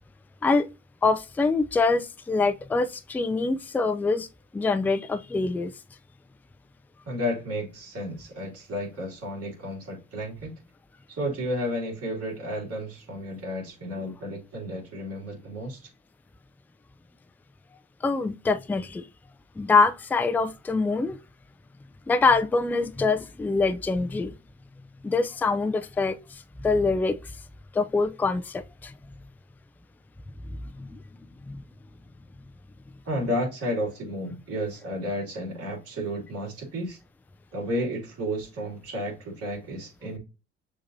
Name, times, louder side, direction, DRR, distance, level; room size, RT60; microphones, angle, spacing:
voice 1, 1.0-4.3 4.5-5.7 18.0-19.1 19.6-21.2 22.1-24.3 25.0-27.2 27.7-28.9 30.5-30.9 31.4-31.6, left 3 dB, 5° left, 0.3 m, -25 dB
voice 2, 7.1-10.5 11.1-15.8 33.0-37.0 37.5-40.2, equal, 50° right, 2.5 m, -32 dB
6.4 x 2.8 x 2.6 m
hypercardioid pair, 60°, 31 cm